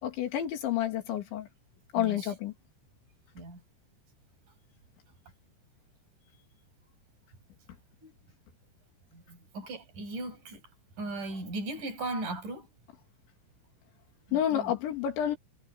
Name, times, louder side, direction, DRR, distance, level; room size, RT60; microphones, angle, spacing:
voice 1, 0.0-1.5 1.9-2.5 14.3-15.4, left 11 dB, 75° left, 5.2 m, -29 dB
voice 2, 1.9-2.3 3.3-3.6 8.0-8.1 9.1-10.6 11.0-12.7 14.3-14.8, right 2 dB, 45° right, 9.5 m, -38 dB
omnidirectional pair, 5.4 m